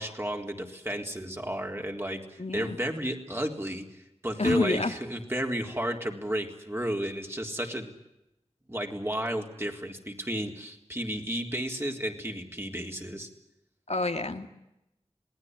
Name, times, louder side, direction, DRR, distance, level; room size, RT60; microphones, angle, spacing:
voice 1, 0.0-3.9 4.2-7.9 8.7-13.3, right 1 dB, 20° right, 3 dB, 4.0 m, -32 dB
voice 2, 2.4-2.8 4.4-4.9 13.9-14.5, left 2 dB, 75° left, 6 dB, 2.1 m, -28 dB
27.0 x 19.5 x 9.7 m, 0.90 s
wide cardioid pair, 45°, 11 cm